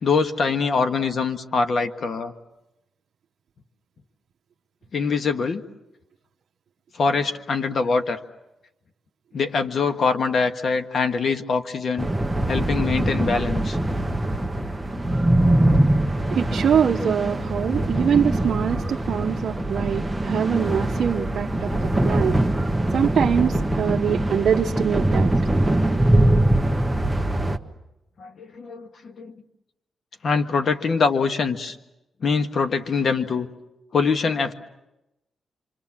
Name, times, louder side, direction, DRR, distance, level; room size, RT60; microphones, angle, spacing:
voice 1, 0.0-2.3 4.9-5.6 6.9-8.2 9.3-12.1 12.5-13.8 28.2-29.3 30.2-31.8 32.2-33.5 33.9-34.5, left 4 dB, 55° left, 7 dB, 1.6 m, -23 dB
sound 1, 12.0-27.6, right 1 dB, 5° right, 1.2 m, -22 dB
voice 2, 16.3-22.4 22.9-25.3, right 8 dB, 65° right, 1 dB, 0.8 m, -23 dB
26.0 x 26.0 x 7.4 m, 0.94 s
cardioid pair, 110°, 0 cm